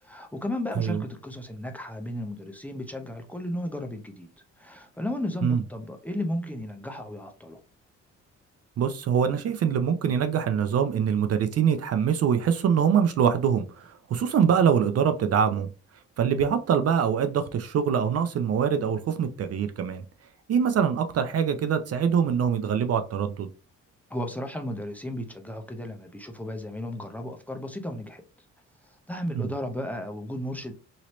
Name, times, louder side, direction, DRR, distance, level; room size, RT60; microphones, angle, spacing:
voice 1, 0.0-4.3 4.6-7.6 24.1-28.2 28.9-30.7, left 1 dB, 5° left, 0.7 m, -34 dB
voice 2, 8.8-15.7 16.2-20.0 20.5-23.5 29.3-29.5, right 7 dB, 55° right, 0.5 m, -24 dB
3.0 x 2.8 x 3.0 m
cardioid pair, 90°, 30 cm